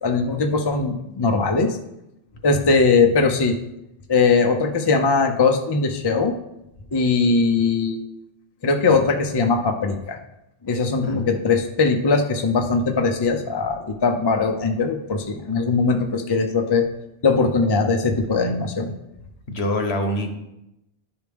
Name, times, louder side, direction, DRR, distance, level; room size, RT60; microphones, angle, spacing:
voice 1, 0.0-1.8 2.4-3.6 4.1-6.3 6.9-8.0 8.6-10.2 10.6-16.9 17.2-18.9, left 4 dB, 30° left, 5 dB, 0.5 m, -20 dB
voice 2, 19.5-20.3, left 1 dB, 70° left, 4 dB, 1.3 m, -25 dB
11.0 x 4.7 x 3.5 m, 0.87 s
omnidirectional pair, 1.1 m